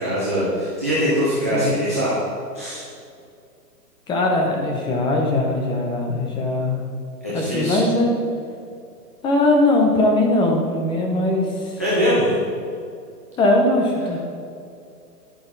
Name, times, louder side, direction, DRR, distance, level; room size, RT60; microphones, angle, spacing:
voice 1, 0.0-2.1 2.5-2.9 7.2-7.8 11.8-12.3, equal, 10° right, -9 dB, 0.4 m, -22 dB
voice 2, 4.1-6.8 7.3-8.1 9.2-11.8 13.4-14.2, left 2 dB, 10° left, 1 dB, 0.8 m, -20 dB
10.5 x 10.5 x 4.1 m, 2.4 s
hypercardioid pair, 140°, 50 cm